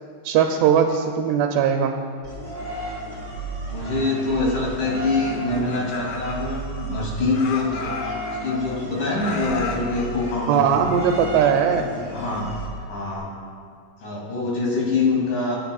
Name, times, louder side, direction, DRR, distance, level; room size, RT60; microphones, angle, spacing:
voice 1, 0.2-2.0 10.5-11.8, right 7 dB, 90° right, 3 dB, 2.8 m, -19 dB
sound 1, 2.2-13.2, right 2 dB, 30° left, 1.4 m, -34 dB
voice 2, 3.6-8.0 8.4-10.6 11.7-12.5 12.8-13.3 14.0-15.6, left 3 dB, 55° left, -5 dB, 4.2 m, -25 dB
Laughter, 5.3-7.0 7.3-8.8 9.2-11.5, left 4 dB, 70° left, 2.5 m, -34 dB
23.0 x 9.5 x 2.4 m, 2.3 s
omnidirectional pair, 4.7 m